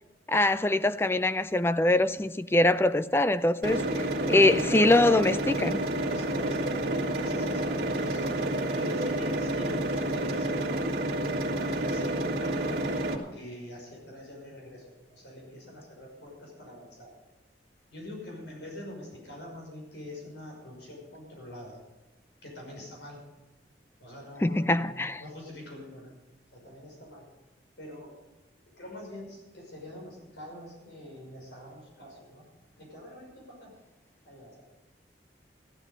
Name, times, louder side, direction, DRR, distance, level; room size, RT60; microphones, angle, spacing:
voice 1, 0.3-3.8 4.3-5.8 24.4-25.2, left 2 dB, 15° left, 0.3 m, -23 dB
sound 1, 3.6-13.1, right 1 dB, 55° right, 2.5 m, -29 dB
voice 2, 3.7-5.1 6.0-11.1 11.6-17.1 17.9-21.8 22.4-23.2 24.0-26.1 26.5-27.3 27.8-28.2 28.8-32.5 32.8-33.7 34.3-34.6, left 1 dB, 85° left, 5.9 m, -45 dB
14.0 x 13.0 x 5.2 m
head